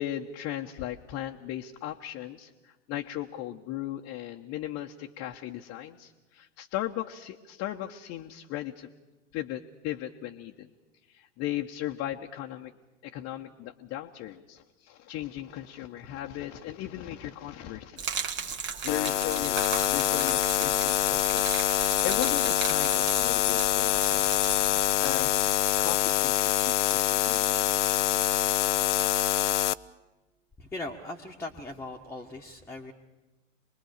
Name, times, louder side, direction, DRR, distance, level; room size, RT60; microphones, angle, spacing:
voice 1, 0.0-8.9 9.3-10.7 11.1-12.7 13.0-21.4 22.0-24.4 25.0-27.6, left 13 dB, 35° left, 1 dB, 1.1 m, -37 dB
Gurgling / Liquid, 18.0-25.6, right 7 dB, 30° right, 1.6 m, -37 dB
sound 1, 18.9-29.7, left 13 dB, 65° left, 0.7 m, -25 dB
voice 2, 30.6-32.9, left 2 dB, 5° left, -1 dB, 1.5 m, -39 dB
26.0 x 21.0 x 6.6 m, 1.1 s
figure-of-eight pair, 95°, 39 cm